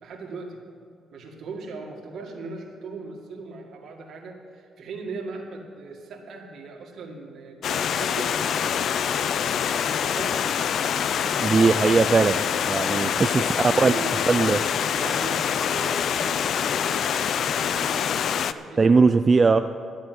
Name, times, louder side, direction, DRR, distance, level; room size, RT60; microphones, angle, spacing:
voice 1, 0.0-0.6 1.1-9.4 9.6-10.7 13.4-19.0 19.4-19.6, right 3 dB, 65° right, 1 dB, 2.1 m, -39 dB
Stream, 7.6-18.5, left 8 dB, 65° left, 0.4 m, -25 dB
voice 2, 11.2-12.4 12.7-13.5 13.8-13.9 14.3-14.6 18.8-19.6, right 4 dB, 30° right, 8 dB, 0.4 m, -19 dB
12.0 x 6.7 x 9.5 m, 2.3 s
cardioid pair, 90°, 0 cm